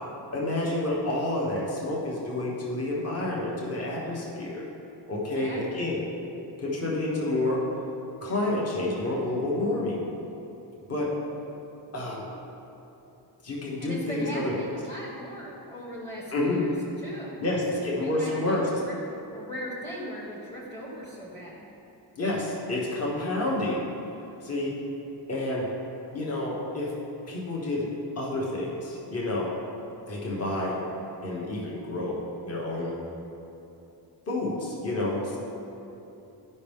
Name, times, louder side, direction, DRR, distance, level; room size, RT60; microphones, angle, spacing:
voice 1, 0.3-4.7 5.1-6.0 6.6-7.6 8.2-10.0 10.9-11.1 11.9-12.3 13.4-14.5 16.3-16.6 17.4-18.8 22.2-23.8 24.4-24.8 25.3-25.7 26.1-26.9 27.3-27.9 28.2-29.5 30.1-30.8 31.2-33.0 34.3-35.4, left 2 dB, 35° left, -4 dB, 1.2 m, -29 dB
voice 2, 5.1-5.9 13.8-16.7 17.0-17.4 17.7-19.0 19.3-21.6, equal, 10° left, -6 dB, 1.0 m, -39 dB
12.5 x 5.3 x 3.6 m, 3.0 s
wide cardioid pair, 175°, 44 cm